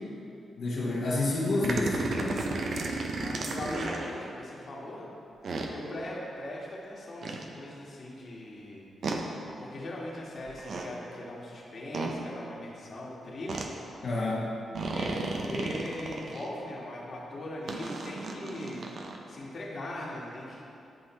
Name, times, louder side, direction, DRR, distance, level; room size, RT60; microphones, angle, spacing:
voice 1, 0.6-2.4 14.0-14.5, left 2 dB, 70° left, -9 dB, 1.3 m, -29 dB
sound 1, 1.6-4.1 5.4-5.7 7.2-7.4 9.0-9.2 10.5-10.9 11.9-12.1 13.5-13.7 14.7-16.5 17.7-19.2, right 3 dB, 65° right, 0.7 m, -34 dB
voice 2, 3.2-5.1 5.7-8.8 9.6-13.7 14.9-18.8 19.3-20.6, left 1 dB, 55° left, -4 dB, 1.6 m, -40 dB
10.5 x 3.8 x 4.3 m, 2.7 s
cardioid pair, 75°, 0 cm